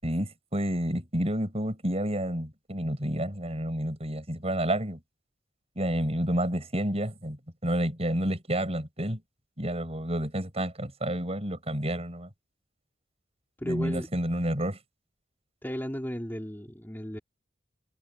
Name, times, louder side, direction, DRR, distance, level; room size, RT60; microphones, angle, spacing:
voice 1, 0.0-5.0 5.8-9.2 9.6-12.3 13.6-14.8, right 1 dB, 35° right, 7.2 m, -30 dB
voice 2, 13.6-14.1 15.6-17.2, equal, 10° left, 3.5 m, -34 dB
head